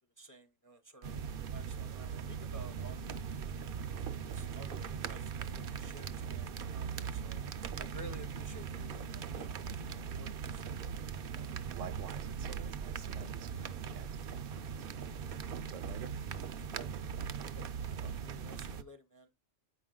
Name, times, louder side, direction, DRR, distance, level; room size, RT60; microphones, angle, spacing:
voice 1, 0.2-3.3 3.9-7.4 7.8-10.7 16.7-16.9 17.5-19.3, right 2 dB, 20° left, 0.5 m, -54 dB
sound 1, 1.0-18.8, right 7 dB, 60° right, 0.6 m, -40 dB
voice 2, 11.3-14.1 15.5-16.1, right 8 dB, 80° right, 1.0 m, -49 dB
8.6 x 4.9 x 3.7 m
omnidirectional pair, 1.3 m